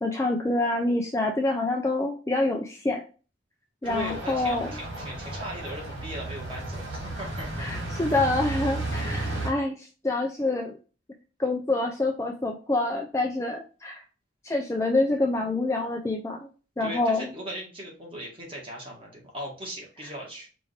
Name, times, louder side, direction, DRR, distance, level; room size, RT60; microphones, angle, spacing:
voice 1, 0.0-3.0 3.8-4.7 7.6-10.7 11.4-14.0 14.4-16.5 16.8-17.3, left 2 dB, 15° left, 1 dB, 0.4 m, -26 dB
voice 2, 3.8-7.8 16.8-20.5, right 1 dB, 25° right, -2 dB, 1.4 m, -38 dB
sound 1, 3.8-9.5, right 2 dB, 75° right, 2.0 m, -33 dB
4.9 x 2.6 x 3.2 m, 0.35 s
head